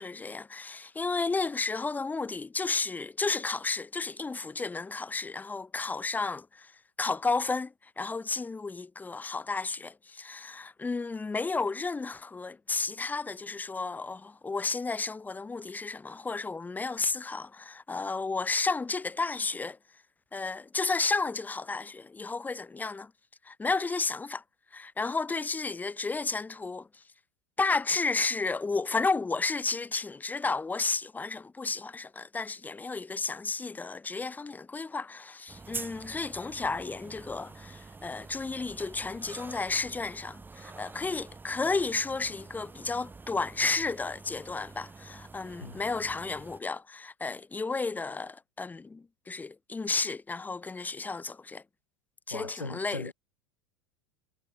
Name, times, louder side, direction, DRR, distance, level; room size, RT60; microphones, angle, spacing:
voice 1, 0.0-6.7 7.0-19.8 20.3-23.1 23.4-24.4 24.7-27.0 27.6-51.6 52.3-53.1, left 4 dB, 10° left, 0.7 m, -32 dB
sound 1, 35.5-46.6, right 3 dB, 10° right, 1.7 m, -47 dB
voice 2, 52.3-53.1, left 3 dB, 85° left, 1.4 m, -38 dB
figure-of-eight pair, 80°, 16 cm